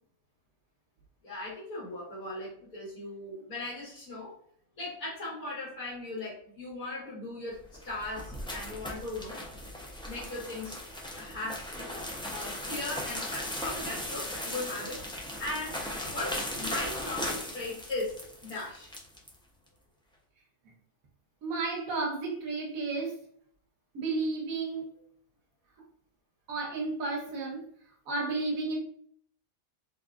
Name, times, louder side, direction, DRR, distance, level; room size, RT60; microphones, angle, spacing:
voice 1, 1.2-4.3 4.8-7.6 7.8-9.4 10.1-10.8 11.2-12.0 12.3-15.8 16.1-18.9, left 2 dB, 85° left, -9 dB, 2.1 m, -38 dB
sound 1, 7.6-19.3, left 1 dB, 5° left, 0.3 m, -37 dB
voice 2, 21.4-23.2 23.9-24.9 26.5-27.7 28.1-28.8, right 3 dB, 80° right, 0 dB, 1.2 m, -32 dB
3.8 x 3.4 x 2.4 m, 0.63 s
omnidirectional pair, 1.4 m